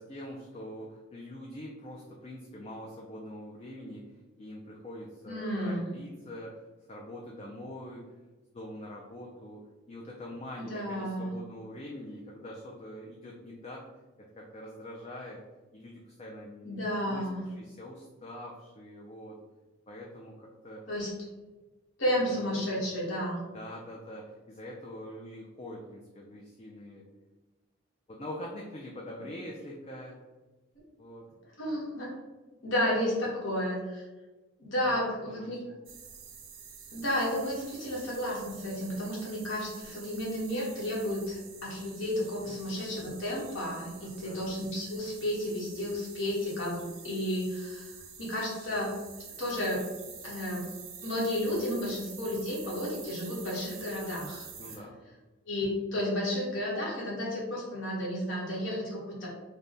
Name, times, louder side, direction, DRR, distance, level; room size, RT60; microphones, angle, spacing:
voice 1, 0.0-4.0 4.4-8.2 8.5-13.8 14.3-15.4 15.7-19.4 19.9-20.8 22.2-22.9 23.5-27.0 28.1-30.2 31.0-31.3 34.8-35.0 35.3-35.5 42.4-42.6 44.0-44.4 52.3-52.4 54.6-54.9, left 1 dB, 30° left, -2 dB, 0.4 m, -44 dB
voice 2, 5.2-5.8 10.6-11.3 16.6-17.4 20.9-21.1 22.0-23.4 30.7-30.8 31.6-32.1 32.6-34.0 34.6-35.6 36.9-47.9 48.2-48.9 49.4-49.9 50.2-50.7 51.0-54.4 55.5-59.3, left 1 dB, 80° left, -5 dB, 1.4 m, -32 dB
sound 1, 35.9-54.8, right 6 dB, 90° right, 0.6 m, -48 dB
3.4 x 2.2 x 3.8 m, 1.2 s
head